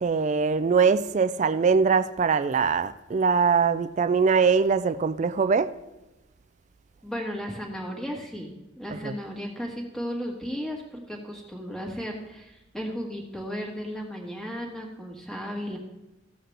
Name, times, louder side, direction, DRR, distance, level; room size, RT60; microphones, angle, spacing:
voice 1, 0.0-5.7 9.0-9.1, right 5 dB, 35° right, 0.3 m, -22 dB
voice 2, 7.0-15.8, equal, ahead, 1.7 m, -35 dB
14.5 x 7.8 x 3.3 m
head